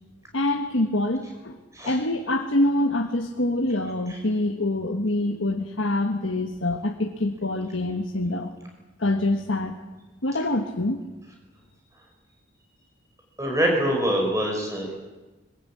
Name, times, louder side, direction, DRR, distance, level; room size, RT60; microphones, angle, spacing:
voice 1, 0.3-1.6 1.8-8.5 9.0-9.8 10.2-11.0, left 1 dB, 70° left, 4 dB, 1.5 m, -25 dB
voice 2, 13.4-14.9, equal, 15° right, 1 dB, 5.6 m, -24 dB
22.0 x 19.5 x 8.6 m, 1.2 s
head